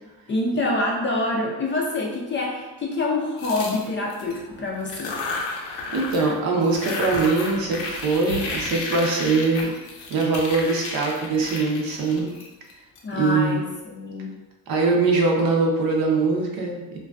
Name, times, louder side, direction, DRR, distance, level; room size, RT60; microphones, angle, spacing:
voice 1, 0.3-5.2 13.0-14.3, left 2 dB, 30° left, -1 dB, 0.4 m, -26 dB
sound 1, 3.4-4.4 4.8-6.4 6.6-13.0, left 3 dB, 80° left, 0.6 m, -33 dB
sound 2, 4.2-5.4 5.7-10.3, equal, 75° right, 1.0 m, -42 dB
voice 2, 5.9-9.7 10.1-12.3 13.1-13.6 14.7-17.0, right 3 dB, 60° right, 0 dB, 0.6 m, -22 dB
2.3 x 2.3 x 2.3 m, 1.1 s
cardioid pair, 95°, 41 cm